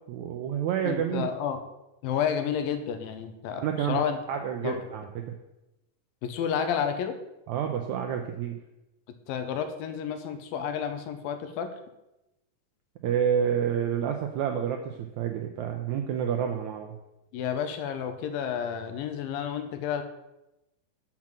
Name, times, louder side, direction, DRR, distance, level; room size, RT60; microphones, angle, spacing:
voice 1, 0.1-1.3 3.6-4.0 4.3-5.2 7.5-8.6 13.0-16.9, right 8 dB, 85° right, 3 dB, 1.7 m, -29 dB
voice 2, 0.8-1.6 2.0-4.2 4.6-4.8 6.2-7.2 9.3-11.7 17.3-20.0, left 8 dB, 80° left, 8 dB, 2.6 m, -30 dB
7.1 x 6.0 x 7.5 m, 0.93 s
omnidirectional pair, 4.1 m